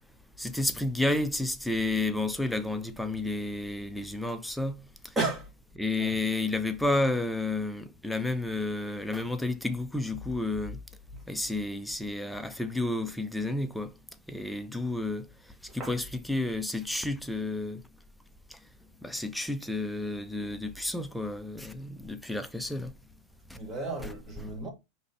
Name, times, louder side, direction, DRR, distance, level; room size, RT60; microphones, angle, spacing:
voice 1, 0.4-5.2 5.8-10.8 11.3-13.9 14.3-15.3 15.7-17.8 18.5-18.6 19.0-22.9 23.5-23.6, left 2 dB, ahead, 0.5 m, -31 dB
voice 2, 5.1-5.5 6.0-6.1 11.1-11.2 15.8-16.0 23.5-24.7, right 3 dB, 20° right, 1.5 m, -33 dB
5.0 x 3.2 x 2.7 m
supercardioid pair, 140°, 0 cm